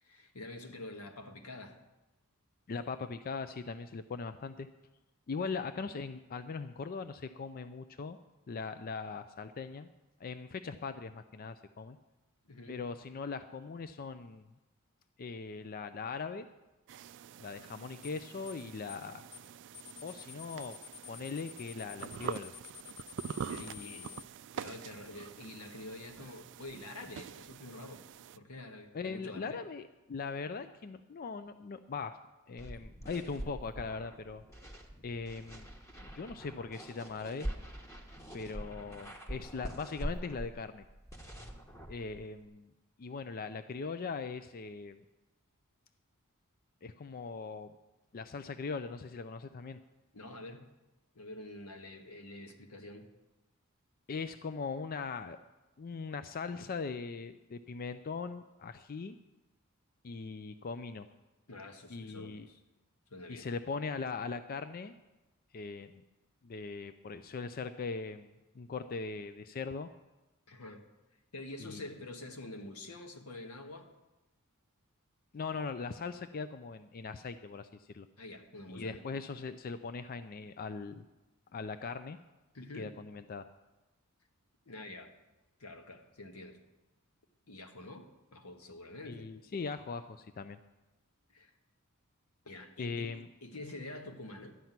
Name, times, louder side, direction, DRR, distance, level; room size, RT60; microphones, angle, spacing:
voice 1, 0.0-1.8 12.4-12.9 23.3-24.1 24.5-28.1 28.3-29.6 50.1-50.7 51.1-53.1 61.5-62.6 63.1-63.5 70.5-70.8 71.3-73.9 78.2-79.0 82.5-83.0 84.6-85.1 85.6-86.6 87.5-89.3 91.3-91.5 92.4-94.6, left 2 dB, 85° left, 4 dB, 1.5 m, -47 dB
voice 2, 2.7-4.7 5.3-8.2 8.5-9.9 10.2-12.0 12.7-14.5 15.2-16.5 17.4-19.2 20.0-20.8 21.1-22.5 23.6-24.0 28.9-29.8 30.1-32.2 32.5-34.4 35.0-35.7 36.0-37.5 38.3-40.8 41.9-42.7 43.0-45.0 46.8-47.7 48.1-49.8 54.1-55.4 55.8-59.2 60.0-61.1 61.9-62.5 63.3-65.0 65.5-66.0 66.4-68.3 68.6-69.9 71.6-71.8 75.3-78.1 78.7-81.0 81.5-82.2 82.8-83.5 89.1-90.6 92.8-93.3, left 4 dB, 40° left, 11 dB, 0.4 m, -40 dB
sound 1, 16.9-28.4, right 8 dB, 55° right, 0.3 m, -45 dB
sound 2, 18.0-18.2 18.5-18.6 18.9-19.1 19.3-19.5 19.7-24.2, left 10 dB, 70° left, 1.5 m, -49 dB
sound 3, 32.6-42.4, equal, 15° left, 1.3 m, -44 dB
12.5 x 5.9 x 9.3 m, 1.0 s
head